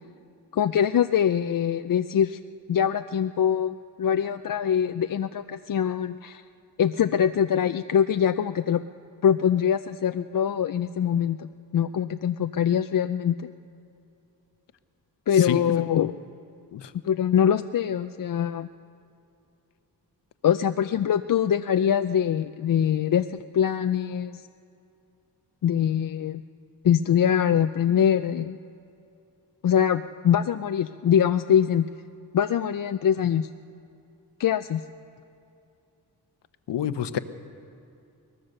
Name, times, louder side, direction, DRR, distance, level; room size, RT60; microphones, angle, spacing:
voice 1, 0.5-2.4 2.7-6.4 6.8-8.8 9.2-13.5 15.3-16.1 17.0-18.7 20.4-23.3 23.5-24.4 25.6-26.4 26.8-28.6 29.6-31.9 32.3-33.5 34.4-34.8, left 9 dB, 50° left, 9 dB, 0.6 m, -23 dB
voice 2, 15.4-15.8 16.7-16.9 36.7-37.2, left 9 dB, 80° left, 11 dB, 1.0 m, -28 dB
22.5 x 19.0 x 6.6 m, 2.7 s
cardioid pair, 70°, 42 cm